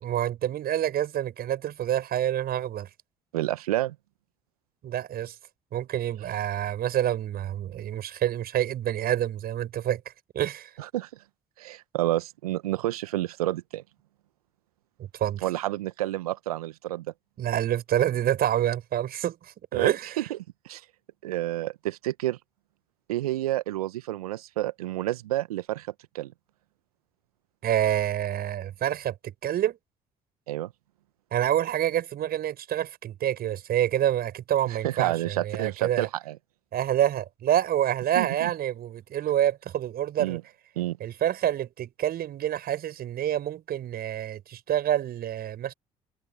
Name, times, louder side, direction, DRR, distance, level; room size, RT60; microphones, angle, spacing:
voice 1, 0.0-2.9 4.8-5.3 5.7-10.7 15.0-15.5 17.4-20.2 27.6-29.8 31.3-36.1 36.7-40.4 41.0-45.7, right 11 dB, 55° right, 6.5 m, -27 dB
voice 2, 3.3-3.9 10.9-11.1 11.6-13.8 15.4-17.1 19.7-20.4 20.6-20.8 21.2-22.4 23.1-25.9 26.1-26.3 30.5-30.7 34.8-36.4 38.2-38.5 40.2-40.4 40.8-41.0, right 15 dB, 80° right, 1.2 m, -29 dB
hypercardioid pair, 50°, 19 cm